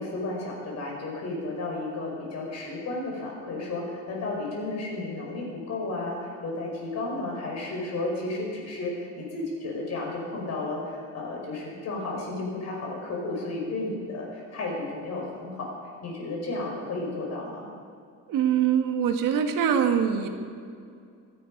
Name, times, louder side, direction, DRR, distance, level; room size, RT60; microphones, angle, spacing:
voice 1, 0.0-15.7 16.0-17.6, left 2 dB, 55° left, -1 dB, 5.1 m, -33 dB
voice 2, 18.3-20.3, right 8 dB, 90° right, 5 dB, 1.7 m, -23 dB
26.0 x 10.0 x 5.3 m, 2.4 s
cardioid pair, 175°, 32 cm